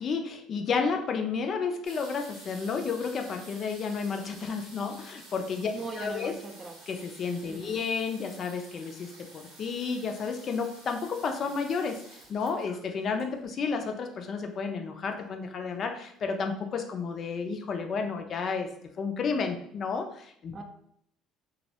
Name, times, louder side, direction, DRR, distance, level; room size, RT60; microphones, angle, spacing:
voice 1, 0.0-6.4 6.9-18.7 19.0-20.6, left 5 dB, 50° left, 5 dB, 0.3 m, -32 dB
sound 1, 1.8-14.4 15.2-15.3 15.5-15.9 16.2-16.8 17.3-17.4 17.6-17.7, right 2 dB, 90° right, 0.7 m, -51 dB
voice 2, 5.7-6.8 7.5-7.8 20.5-20.6, right 3 dB, 40° right, 4 dB, 0.4 m, -39 dB
2.2 x 2.0 x 2.7 m, 0.69 s
supercardioid pair, 85°, 0 cm